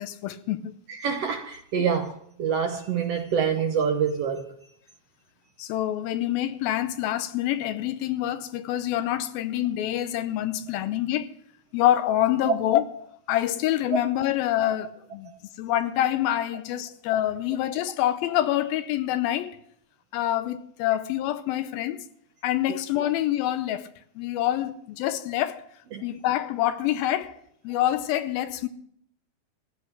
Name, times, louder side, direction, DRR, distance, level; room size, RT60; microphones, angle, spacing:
voice 1, 0.0-0.8 1.8-1.9 5.6-11.3 11.7-15.3 15.6-19.6 20.1-22.1 22.4-23.9 24.2-25.6 26.0-27.4 27.6-28.7, left 13 dB, 85° left, 2.6 m, -26 dB
voice 2, 0.9-2.1 2.4-4.5 13.9-14.0 15.2-15.4 22.7-22.8 25.9-26.0, right 7 dB, 70° right, 1.5 m, -26 dB
15.0 x 10.0 x 5.9 m
omnidirectional pair, 4.2 m